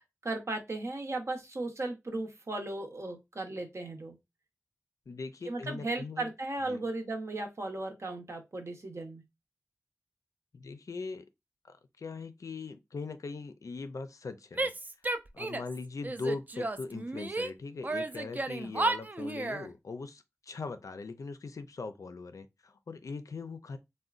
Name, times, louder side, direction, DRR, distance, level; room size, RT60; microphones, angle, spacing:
voice 1, 0.0-4.2 5.5-9.2, right 2 dB, 60° right, 0.8 m, -36 dB
voice 2, 5.1-6.3 6.6-6.8 10.5-11.3 11.6-14.7 15.3-23.8, left 4 dB, 80° left, 0.4 m, -40 dB
Female speech woman speaking / Yell, 14.5-15.8 16.0-17.5 17.8-19.7, right 2 dB, 30° right, 0.3 m, -33 dB
3.7 x 2.1 x 2.4 m
wide cardioid pair, 80°, 6 cm